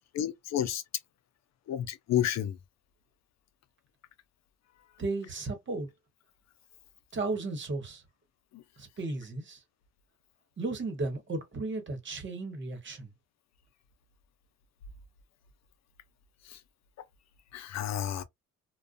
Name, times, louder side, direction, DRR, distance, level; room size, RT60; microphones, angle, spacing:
voice 1, 0.1-0.8 1.7-2.6 8.5-8.6 16.4-16.6 17.5-18.2, left 10 dB, 65° left, 0.5 m, -31 dB
voice 2, 5.0-5.9 7.1-8.0 8.8-9.6 10.6-13.1, right 3 dB, 40° right, 1.1 m, -34 dB
2.4 x 2.2 x 2.4 m
cardioid pair, 90°, 30 cm